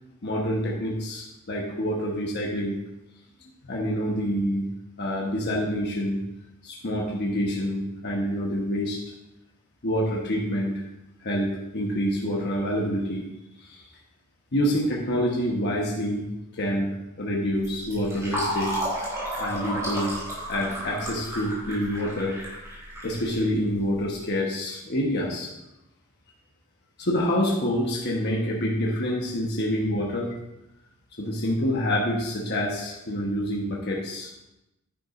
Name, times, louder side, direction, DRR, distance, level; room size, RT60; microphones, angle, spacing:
voice 1, 0.2-2.8 3.6-4.7 5.0-6.2 6.6-9.0 9.8-10.8 11.2-13.3 13.6-13.8 14.5-16.3 16.5-19.1 19.4-20.2 20.5-22.4 23.0-25.5 27.0-30.3 31.2-34.3, equal, 50° left, -2 dB, 1.2 m, -27 dB
Fill (with liquid), 17.6-24.0, right 1 dB, 15° right, 3.7 m, -32 dB
10.0 x 9.8 x 2.6 m, 0.90 s
head